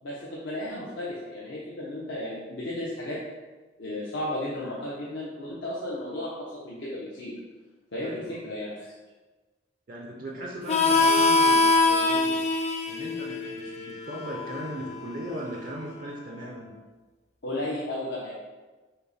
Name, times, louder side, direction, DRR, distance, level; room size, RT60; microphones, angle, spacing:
voice 1, 0.0-3.2 3.8-7.4 7.9-8.9 17.4-18.3, left 1 dB, 70° left, -6 dB, 0.7 m, -34 dB
voice 2, 8.0-8.4 9.9-12.4 12.9-16.7, right 1 dB, 45° right, -1 dB, 0.5 m, -38 dB
Harmonica, 10.7-16.0, left 3 dB, 35° left, 0.3 m, -24 dB
5.5 x 2.1 x 3.9 m, 1.3 s
head